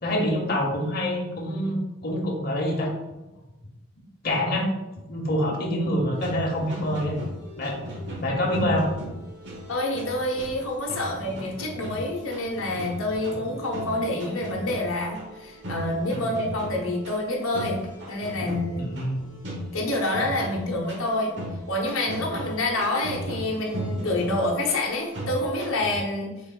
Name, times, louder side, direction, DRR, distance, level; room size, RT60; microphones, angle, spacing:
voice 1, 0.0-2.9 4.2-4.7 5.1-7.2 7.6-7.8 8.2-8.9 16.1-16.3 18.8-19.2, left 1 dB, 45° left, -1 dB, 0.9 m, -26 dB
sound 1, 6.1-26.0, equal, 60° right, 1.2 m, -37 dB
voice 2, 9.7-17.8 18.1-18.9 19.7-21.3 21.7-26.3, left 1 dB, 85° left, 0 dB, 0.8 m, -27 dB
6.2 x 3.9 x 2.2 m, 1.0 s
head